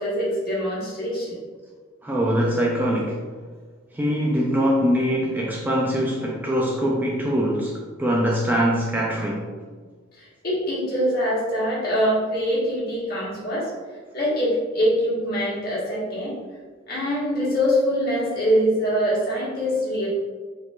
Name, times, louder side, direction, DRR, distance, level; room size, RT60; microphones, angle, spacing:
voice 1, 0.0-1.3 10.1-13.7 14.1-16.3 16.9-20.1, equal, 50° left, -7 dB, 1.3 m, -24 dB
voice 2, 2.0-3.2 3.9-9.5, equal, 10° right, -3 dB, 0.3 m, -23 dB
4.3 x 2.9 x 2.3 m, 1.5 s
head